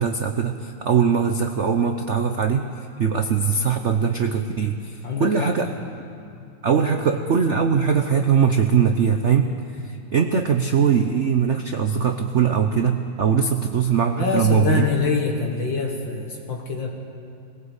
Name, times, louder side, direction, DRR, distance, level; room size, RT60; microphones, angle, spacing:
voice 1, 0.0-5.7 6.6-14.8, right 6 dB, 90° right, 6 dB, 0.6 m, -21 dB
voice 2, 5.0-6.0 6.2-6.3 7.0-7.2 14.1-16.9, left 4 dB, 60° left, 1 dB, 2.2 m, -26 dB
21.0 x 17.0 x 8.1 m, 2.5 s
omnidirectional pair, 2.4 m